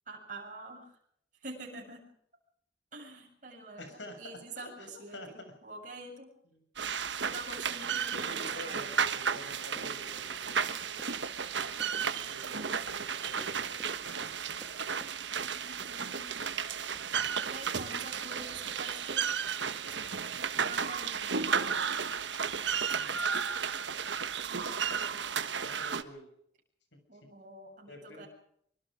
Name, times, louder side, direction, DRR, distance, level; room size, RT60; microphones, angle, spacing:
voice 1, 0.1-0.9 1.4-2.1 2.9-6.3 7.2-8.9 12.4-12.6 15.4-16.3 17.3-19.3 20.5-21.8 22.9-23.7 24.7-25.3 27.1-28.3, right 2 dB, 45° right, -1 dB, 7.6 m, -47 dB
voice 2, 3.8-5.5 6.5-6.7 6.9-7.1 8.1-10.5 12.0-13.9 22.9-23.3 25.6-26.3 26.9-27.0 27.9-28.3, left 1 dB, 75° left, 6 dB, 7.0 m, -49 dB
sound 1, 6.8-26.0, right 6 dB, 75° right, 1.3 m, -33 dB
Run, 8.5-15.2 15.4-16.0 16.4-16.6 16.9-17.1, equal, 10° right, 2.2 m, -56 dB
24.5 x 24.5 x 5.1 m, 0.68 s
head